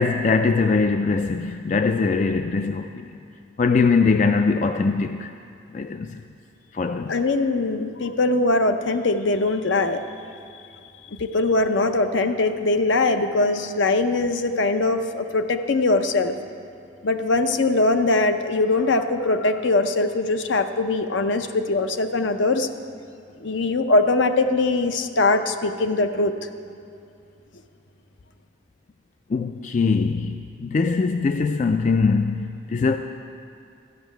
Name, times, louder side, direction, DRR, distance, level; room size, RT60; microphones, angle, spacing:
voice 1, 0.0-3.2 3.6-5.3 5.7-6.2 6.7-7.1 29.3-30.4 30.6-33.0, left 4 dB, 35° left, 0.3 m, -22 dB
voice 2, 7.1-10.0 11.2-16.3 17.0-22.7 23.4-26.3, left 2 dB, 70° left, 0.7 m, -21 dB
13.5 x 6.3 x 9.2 m
head